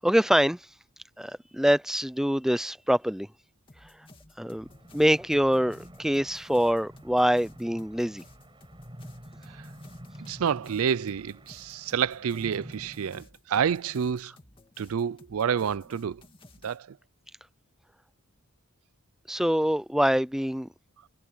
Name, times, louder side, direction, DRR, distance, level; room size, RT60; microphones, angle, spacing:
voice 1, 0.0-0.6 1.2-3.3 4.4-4.7 4.9-8.2 19.3-20.7, equal, ahead, 0.5 m, -24 dB
sound 1, 3.7-16.8, left 2 dB, 25° left, 2.4 m, -55 dB
sound 2, 4.6-13.2, equal, 25° right, 5.9 m, -48 dB
voice 2, 10.2-14.3 14.8-16.2 16.6-16.9, right 7 dB, 80° right, 0.4 m, -29 dB
head